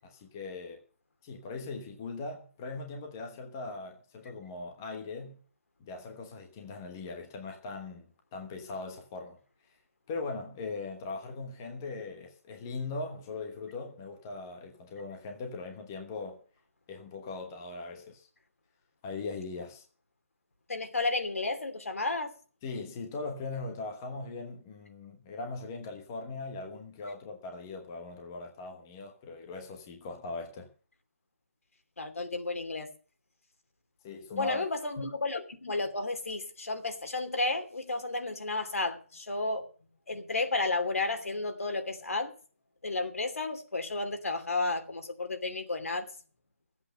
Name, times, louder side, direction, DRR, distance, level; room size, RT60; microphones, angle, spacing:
voice 1, 0.0-0.8 1.2-5.4 5.8-9.4 10.1-16.4 16.9-18.3 19.0-19.8 22.6-30.7 34.0-34.7 35.0-35.1, left 3 dB, 10° left, 1.1 m, -40 dB
voice 2, 20.7-22.3 32.0-32.9 34.4-39.6 40.1-42.3 42.8-46.1, left 3 dB, 75° left, 2.8 m, -32 dB
14.0 x 8.2 x 6.6 m
hypercardioid pair, 180°, 8 cm